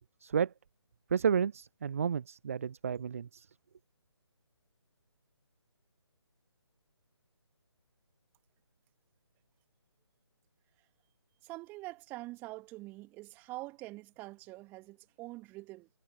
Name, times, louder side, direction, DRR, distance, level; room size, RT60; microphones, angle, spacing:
voice 1, 0.2-0.5 1.1-3.5, right 7 dB, 30° right, 0.4 m, -31 dB
voice 2, 11.4-15.9, right 20 dB, 15° right, 1.8 m, -45 dB
figure-of-eight pair, 145°, 15 cm